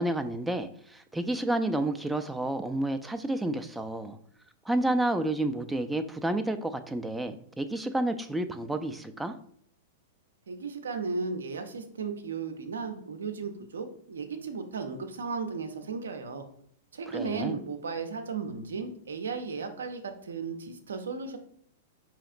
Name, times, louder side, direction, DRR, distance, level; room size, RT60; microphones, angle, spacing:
voice 1, 0.0-4.2 4.7-9.3 17.1-17.6, right 1 dB, 5° right, 7 dB, 0.3 m, -30 dB
voice 2, 10.5-16.5 16.9-21.4, right 4 dB, 80° right, 6 dB, 0.6 m, -35 dB
4.8 x 2.9 x 2.5 m, 0.64 s
hypercardioid pair, 105°, 0 cm